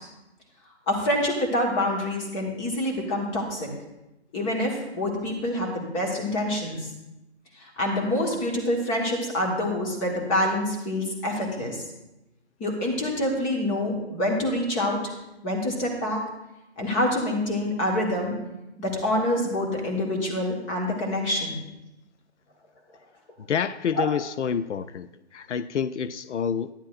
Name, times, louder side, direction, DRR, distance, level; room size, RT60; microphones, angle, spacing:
voice 1, 0.9-3.7 4.3-6.9 7.6-11.8 12.6-15.0 15.4-16.2 16.8-18.4 18.8-21.6 23.9-24.0, left 1 dB, 15° left, -1 dB, 1.3 m, -26 dB
voice 2, 23.5-26.7, left 7 dB, 90° left, 14 dB, 0.5 m, -28 dB
12.0 x 10.0 x 2.5 m, 0.94 s
hypercardioid pair, 155°, 34 cm